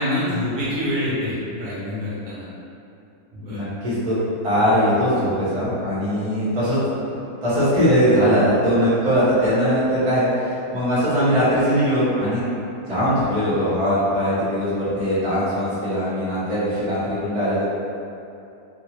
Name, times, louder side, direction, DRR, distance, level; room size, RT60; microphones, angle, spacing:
voice 1, 0.0-2.4 3.3-3.6, left 1 dB, 75° right, -9 dB, 1.5 m, -26 dB
voice 2, 3.5-4.1 4.4-6.8 7.1-12.4 12.9-17.6, equal, 25° right, -12 dB, 0.9 m, -20 dB
3.6 x 2.4 x 3.0 m, 2.7 s
omnidirectional pair, 1.9 m